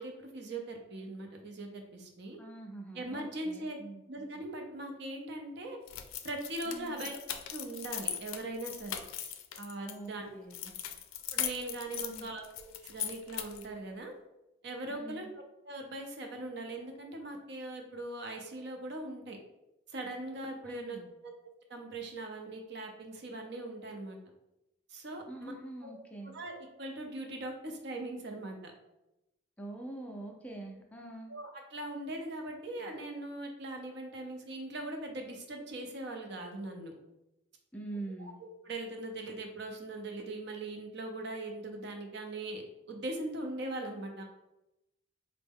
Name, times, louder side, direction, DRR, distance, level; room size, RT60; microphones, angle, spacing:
voice 1, 0.0-2.4 2.9-3.8 4.1-5.8 6.2-9.3 9.6-10.3 11.3-14.1 14.6-15.3 15.6-19.4 19.9-21.3 21.7-24.2 24.9-25.5 25.8-26.1 26.3-28.7 31.3-36.9 38.2-42.6 42.9-44.2, right 2 dB, 55° right, 3 dB, 0.6 m, -40 dB
voice 2, 2.4-4.0 6.7-7.0 9.8-10.7 11.9-12.3 14.9-15.3 20.6-21.1 25.3-26.3 29.6-31.3 37.7-38.4, right 2 dB, 5° left, 1 dB, 0.3 m, -45 dB
sound 1, 5.9-9.9 10.5-13.7, left 10 dB, 90° left, 0.4 m, -39 dB
4.3 x 2.0 x 3.5 m, 0.93 s
head